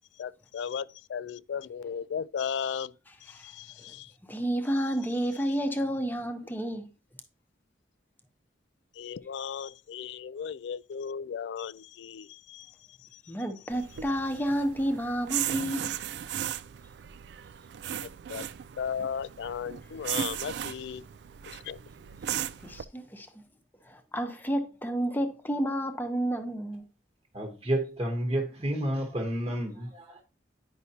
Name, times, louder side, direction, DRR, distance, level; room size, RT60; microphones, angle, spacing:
voice 1, 0.2-2.9 3.4-4.1 9.0-12.7 18.3-18.5 18.8-21.0 21.7-21.8, left 7 dB, 70° left, 0.3 m, -35 dB
voice 2, 4.3-6.9 13.3-15.9 22.6-23.3 23.8-26.8, right 1 dB, 10° left, 0.8 m, -30 dB
sound 1, 13.7-22.8, right 10 dB, 65° right, 0.3 m, -36 dB
voice 3, 27.3-30.2, right 1 dB, 25° right, 1.0 m, -30 dB
9.6 x 5.6 x 2.8 m
head